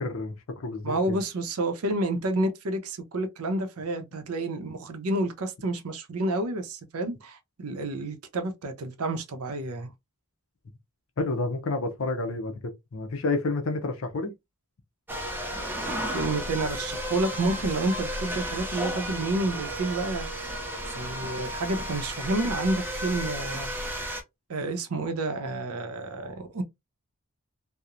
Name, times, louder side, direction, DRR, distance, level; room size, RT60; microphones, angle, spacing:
voice 1, 0.0-1.2 11.2-14.3, left 3 dB, 65° left, 0.5 m, -30 dB
voice 2, 0.8-9.9 16.1-20.6 20.9-23.7 24.5-26.6, right 2 dB, 80° right, 0.6 m, -29 dB
sound 1, 15.1-24.2, equal, 10° right, 0.4 m, -33 dB
2.9 x 2.0 x 2.4 m
head